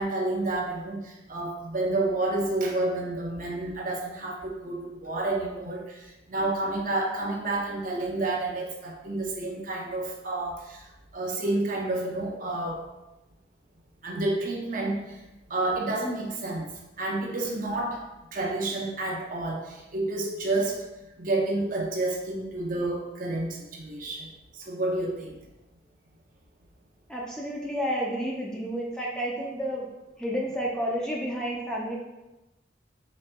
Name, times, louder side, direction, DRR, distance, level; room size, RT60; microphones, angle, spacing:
voice 1, 0.0-10.9 11.1-12.8 14.0-15.2 15.5-16.7 17.0-18.0 18.3-20.8 21.2-24.3 24.5-25.4, right 2 dB, 45° right, -1 dB, 0.6 m, -29 dB
voice 2, 27.1-29.9 30.2-32.0, equal, 5° left, -3 dB, 0.4 m, -30 dB
4.1 x 3.3 x 2.2 m, 1.0 s
head